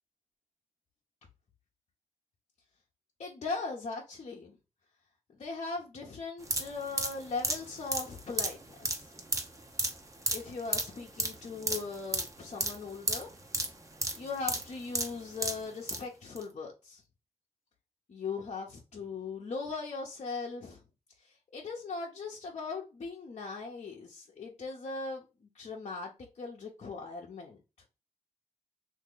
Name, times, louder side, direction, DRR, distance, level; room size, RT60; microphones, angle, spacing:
voice 1, 3.2-4.6 5.4-9.1 10.3-13.3 14.2-17.0 18.1-20.8 21.5-25.2 25.5-27.6, left 4 dB, 55° left, 0.8 m, -39 dB
sound 1, 6.4-16.0 16.4-16.5, right 2 dB, 25° right, 0.8 m, -34 dB
3.0 x 2.7 x 3.8 m
cardioid pair, 80°, 13 cm